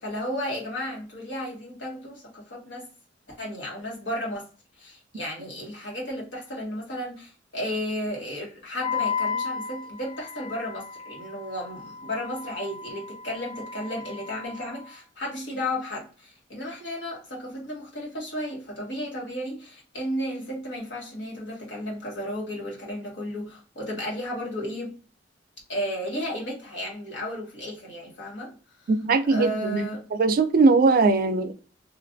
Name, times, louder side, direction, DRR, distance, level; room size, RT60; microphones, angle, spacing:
voice 1, 0.0-2.8 3.3-4.5 4.8-24.9 25.7-28.5 29.3-30.0, equal, 75° left, 1.3 m, -33 dB
Wind instrument woodwind instrument, 8.8-14.9, left 6 dB, 25° left, 0.3 m, -34 dB
voice 2, 28.9-29.8 30.2-31.5, right 3 dB, 50° right, 0.4 m, -20 dB
3.1 x 2.4 x 2.5 m
head